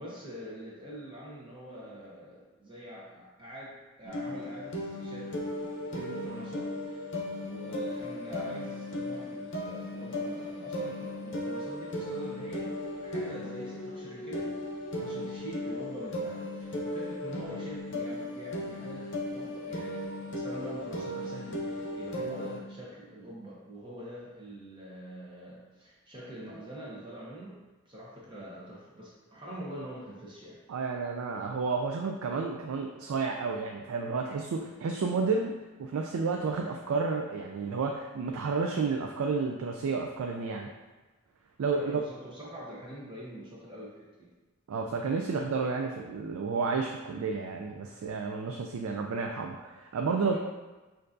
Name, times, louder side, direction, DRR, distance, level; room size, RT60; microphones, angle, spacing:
voice 1, 0.0-5.4 5.9-7.2 7.4-14.5 15.0-27.6 27.9-30.7 41.7-44.3 50.1-50.4, equal, 20° right, -6 dB, 0.8 m, -44 dB
sound 1, 4.0-22.6, left 1 dB, 55° left, 0.7 m, -36 dB
voice 2, 30.7-40.7 41.6-42.0 44.7-50.4, right 4 dB, 90° right, 2 dB, 0.4 m, -31 dB
6.5 x 2.6 x 2.6 m, 1.2 s
head